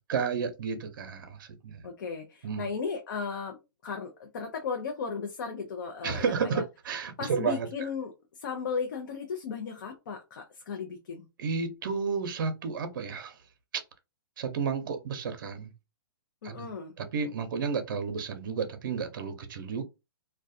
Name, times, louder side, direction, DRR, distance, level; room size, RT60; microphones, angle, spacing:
voice 1, 0.0-1.9 2.4-2.7 6.0-7.7 11.4-13.4 13.7-13.8 14.4-15.7 16.4-16.7 17.0-19.8, right 5 dB, 60° right, 0.6 m, -32 dB
voice 2, 1.8-3.6 3.8-6.6 7.2-11.3 16.4-16.9, left 5 dB, 55° left, 0.6 m, -35 dB
2.3 x 2.2 x 2.6 m
hypercardioid pair, 155°, 12 cm